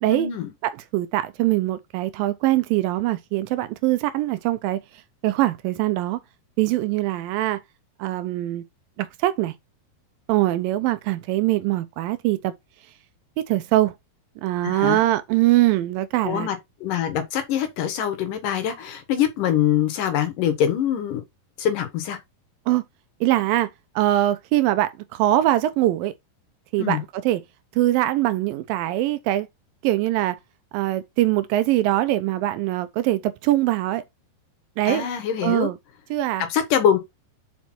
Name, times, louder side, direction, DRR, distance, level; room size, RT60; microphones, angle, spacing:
voice 1, 0.1-0.5 14.6-15.0 16.2-16.6 16.8-21.2 21.6-22.2 26.8-27.0 34.9-35.7 36.5-37.0, left 9 dB, 70° left, 2.7 m, -24 dB
voice 2, 0.6-4.8 5.2-6.2 6.6-7.6 8.0-8.6 9.0-9.5 10.3-12.5 13.4-14.0 14.4-16.5 22.7-22.8 23.2-26.1 26.7-27.4 27.7-29.5 29.8-30.4 30.7-34.0 34.8-35.1 35.4-35.8 36.1-36.5, right 15 dB, 80° right, 2.2 m, -22 dB
5.9 x 5.2 x 4.3 m
omnidirectional pair, 4.3 m